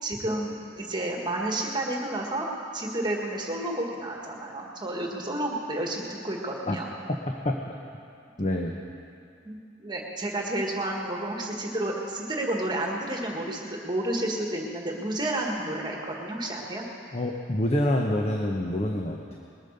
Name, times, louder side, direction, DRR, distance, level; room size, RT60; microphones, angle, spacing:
voice 1, 0.0-2.5 2.7-6.9 9.4-16.8, right 1 dB, 25° right, 0 dB, 1.7 m, -31 dB
voice 2, 7.1-7.6 8.4-8.7 17.1-19.4, left 1 dB, 35° left, 1 dB, 0.9 m, -27 dB
20.5 x 9.0 x 6.7 m, 2.5 s
head